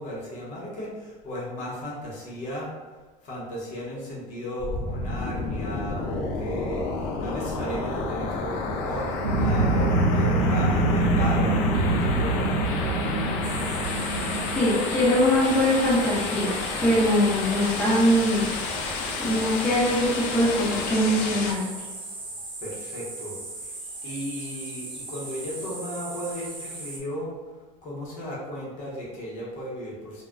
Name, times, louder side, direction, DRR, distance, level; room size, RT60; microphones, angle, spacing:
voice 1, 0.0-2.7 3.2-13.8 22.6-23.8 24.0-27.3 27.8-30.2, equal, 50° left, -5 dB, 0.9 m, -35 dB
sound 1, 4.6-21.5, left 3 dB, 65° left, 0.4 m, -31 dB
sound 2, 9.2-14.8, right 2 dB, 90° right, 0.7 m, -24 dB
sound 3, 13.4-27.0, right 2 dB, 30° right, 0.6 m, -38 dB
voice 2, 14.5-16.5 16.8-18.5 19.2-21.7, equal, 10° left, -9 dB, 0.9 m, -22 dB
2.2 x 2.2 x 3.7 m, 1.3 s
cardioid pair, 145°, 16 cm